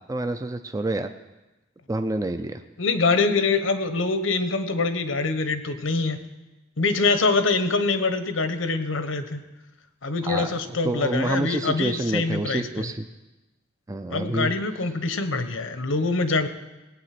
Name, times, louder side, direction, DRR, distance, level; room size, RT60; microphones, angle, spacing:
voice 1, 0.1-1.1 1.9-2.6 10.2-10.5 10.8-13.1 13.9-14.5, right 2 dB, 15° right, 7 dB, 0.5 m, -27 dB
voice 2, 2.8-6.2 6.8-9.4 10.0-12.9 14.1-16.5, left 3 dB, 85° left, 10 dB, 1.1 m, -24 dB
18.0 x 8.9 x 6.0 m, 1.1 s
head